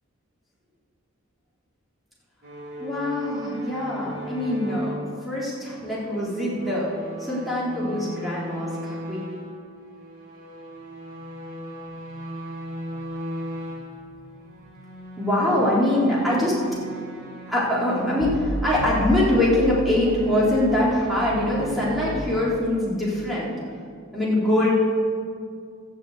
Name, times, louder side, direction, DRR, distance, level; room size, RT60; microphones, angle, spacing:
sound 1, 2.4-9.5 9.8-13.9 14.5-22.2, equal, 60° right, 3.1 m, -35 dB
voice 1, 2.8-4.9 5.2-6.9 7.2-9.2 12.8-13.0 13.6-14.6 15.2-16.8 17.4-23.5 24.1-24.7, left 1 dB, ahead, -8 dB, 3.5 m, -24 dB
13.5 x 7.4 x 8.1 m, 2.2 s
head